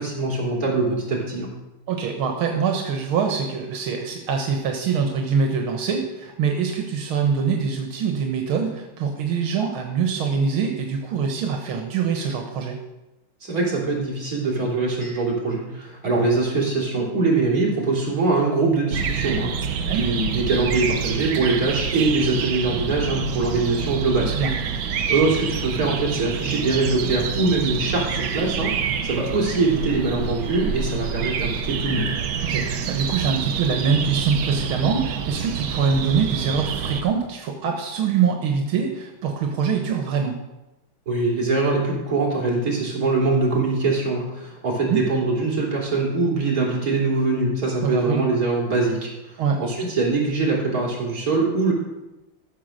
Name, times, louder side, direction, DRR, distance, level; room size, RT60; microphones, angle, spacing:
voice 1, 0.0-1.5 13.4-24.3 25.1-32.1 41.1-51.7, right 3 dB, 45° right, -2 dB, 3.9 m, -23 dB
voice 2, 1.9-12.8 19.9-20.1 24.3-24.5 32.4-40.4 44.9-45.0 47.8-48.3 49.4-49.6, right 6 dB, 85° right, 3 dB, 2.0 m, -24 dB
sound 1, 18.9-37.0, right 7 dB, 65° right, 1.4 m, -27 dB
14.0 x 6.8 x 6.5 m, 0.99 s
omnidirectional pair, 2.3 m